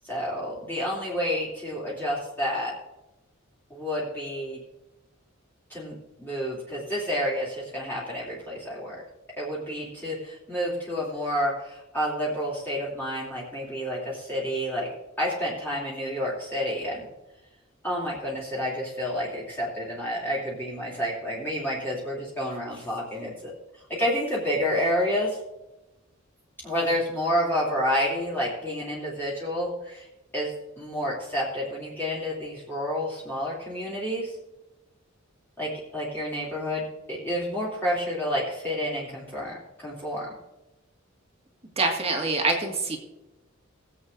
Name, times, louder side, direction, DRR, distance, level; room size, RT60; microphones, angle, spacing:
voice 1, 0.0-2.7 3.7-4.6 5.7-9.0 9.4-14.9 15.2-17.0 17.8-23.5 24.0-25.4 26.6-30.0 30.3-34.3 35.6-40.3, equal, 10° left, -7 dB, 2.9 m, -29 dB
voice 2, 41.8-43.0, right 3 dB, 30° right, 2 dB, 1.9 m, -25 dB
21.5 x 7.8 x 2.6 m, 0.98 s
head